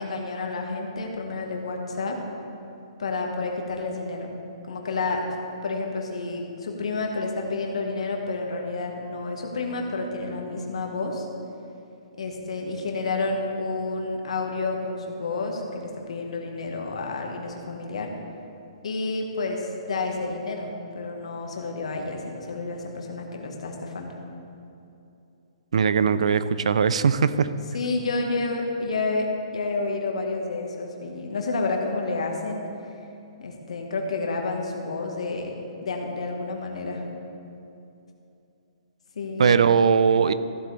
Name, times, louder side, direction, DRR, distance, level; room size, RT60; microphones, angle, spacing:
voice 1, 0.0-2.2 3.0-4.3 4.6-5.2 5.6-11.3 12.2-18.1 18.8-24.1 27.7-29.3 29.5-32.6 33.4-35.5 35.8-37.0 39.1-39.6, left 3 dB, 80° left, 1 dB, 1.4 m, -30 dB
voice 2, 25.7-27.5 39.4-40.3, right 6 dB, 80° right, 14 dB, 0.4 m, -20 dB
14.5 x 8.0 x 3.3 m, 2.7 s
hypercardioid pair, 175°, 3 cm